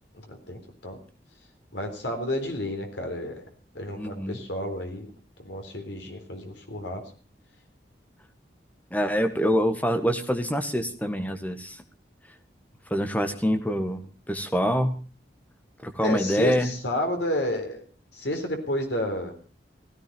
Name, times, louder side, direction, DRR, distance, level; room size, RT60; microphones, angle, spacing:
voice 1, 0.2-1.0 1.7-3.4 3.7-5.1 5.4-7.0 16.0-17.8 18.1-19.4, left 1 dB, 80° left, 4 dB, 4.0 m, -31 dB
voice 2, 4.0-4.4 8.9-11.8 12.9-14.0 14.3-14.9 15.8-16.7, equal, 10° left, 7 dB, 1.6 m, -25 dB
16.5 x 15.5 x 5.4 m, 0.37 s
head